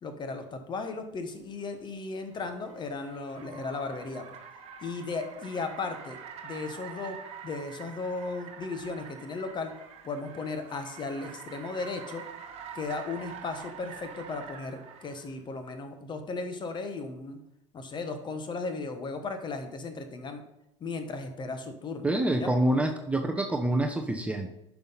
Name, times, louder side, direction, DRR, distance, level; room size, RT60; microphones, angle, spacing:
voice 1, 0.0-4.2 4.8-7.2 7.4-9.7 10.0-12.2 12.7-17.4 17.7-20.4 20.8-22.1 22.4-22.5, left 3 dB, 30° left, 7 dB, 1.3 m, -36 dB
Car, 1.4-15.3, right 7 dB, 40° right, 1.4 m, -46 dB
voice 2, 22.0-24.6, right 1 dB, 10° right, 4 dB, 0.9 m, -27 dB
10.5 x 6.0 x 4.0 m, 0.86 s
figure-of-eight pair, 70°, 16 cm